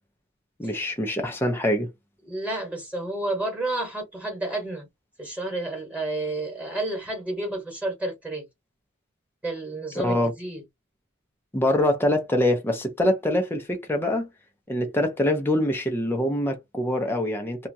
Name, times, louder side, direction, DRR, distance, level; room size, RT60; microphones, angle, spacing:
voice 1, 0.6-1.9 10.0-10.3 11.5-14.3 14.7-17.7, left 1 dB, 10° left, 0.6 m, -24 dB
voice 2, 2.2-4.9 5.2-8.4 9.4-10.6, right 2 dB, 5° right, 1.3 m, -30 dB
2.8 x 2.3 x 2.7 m
head